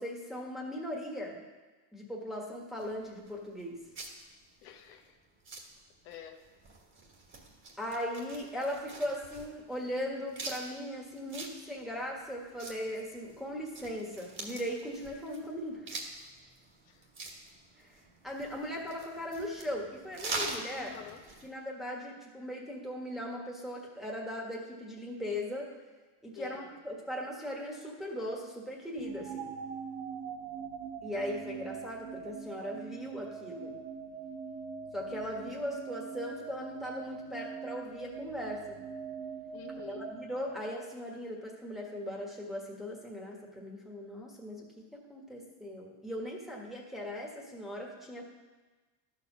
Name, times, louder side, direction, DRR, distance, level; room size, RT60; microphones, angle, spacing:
voice 1, 0.0-1.4 1.9-3.8 7.8-15.9 17.8-17.9 18.2-20.9 21.4-25.7 26.2-29.5 31.0-33.8 34.9-38.8 39.9-48.2, equal, ahead, -3 dB, 1.4 m, -39 dB
sound 1, 2.8-21.5, right 3 dB, 25° right, 1.5 m, -45 dB
voice 2, 4.6-5.2 6.0-6.4 16.9-17.0 20.7-21.2 26.3-26.7 39.5-40.1, left 9 dB, 75° left, 5 dB, 1.1 m, -48 dB
sound 2, 29.0-41.1, right 6 dB, 60° right, 1.2 m, -43 dB
12.0 x 4.7 x 6.2 m, 1.3 s
cardioid pair, 140°, 46 cm